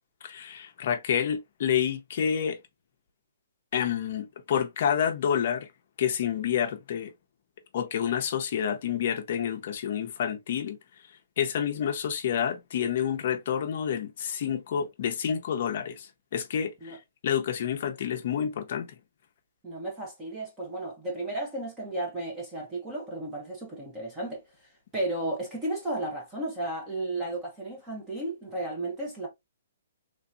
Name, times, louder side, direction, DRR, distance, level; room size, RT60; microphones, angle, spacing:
voice 1, 0.2-2.6 3.7-5.7 6.0-7.1 7.7-10.8 11.4-17.0 17.2-19.0, left 8 dB, 40° left, 0.6 m, -29 dB
voice 2, 19.6-24.4 24.9-29.3, right 2 dB, 10° right, 0.8 m, -33 dB
3.3 x 2.7 x 2.3 m
hypercardioid pair, 175°, 0 cm